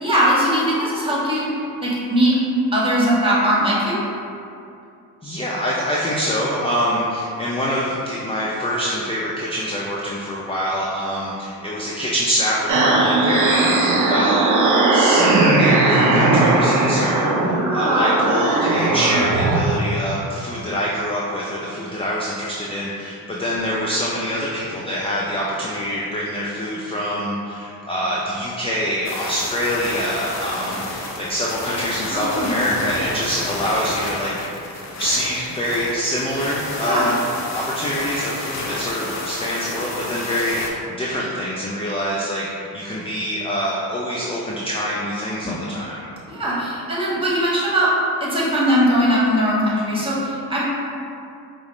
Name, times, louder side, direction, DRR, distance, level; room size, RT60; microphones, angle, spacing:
voice 1, 0.0-1.5 1.8-2.4 2.7-4.0 15.9-16.2 17.8-18.1 32.1-32.6 36.8-37.1 45.4-45.5 46.3-47.9 48.2-50.6, equal, 10° right, -7 dB, 1.3 m, -20 dB
voice 2, 5.2-34.7 35.0-37.2 37.5-46.1, equal, 15° left, -4 dB, 0.3 m, -25 dB
sound 1, 12.7-19.6, right 2 dB, 40° right, 0.6 m, -18 dB
sound 2, 29.0-40.7, left 2 dB, 35° left, 0.8 m, -30 dB
4.9 x 2.0 x 3.0 m, 2.6 s
hypercardioid pair, 50°, 47 cm